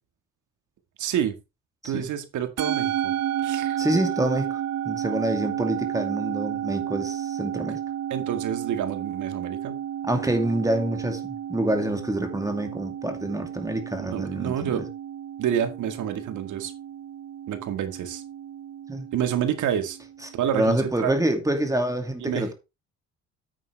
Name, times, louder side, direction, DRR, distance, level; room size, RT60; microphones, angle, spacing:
voice 1, 1.0-1.3 1.8-3.1 3.4-3.9 7.5-7.8 8.1-9.8 14.1-14.9 15.4-16.7 17.5-18.2 19.1-20.0 20.3-21.2 22.2-22.5, right 9 dB, 75° right, 2.0 m, -28 dB
Musical instrument, 2.6-21.1, right 10 dB, 60° right, 0.7 m, -32 dB
voice 2, 3.8-4.6 4.8-7.8 10.0-14.8 18.9-19.1 20.5-22.5, right 1 dB, 10° right, 2.5 m, -26 dB
9.2 x 8.9 x 3.5 m
cardioid pair, 90°, 30 cm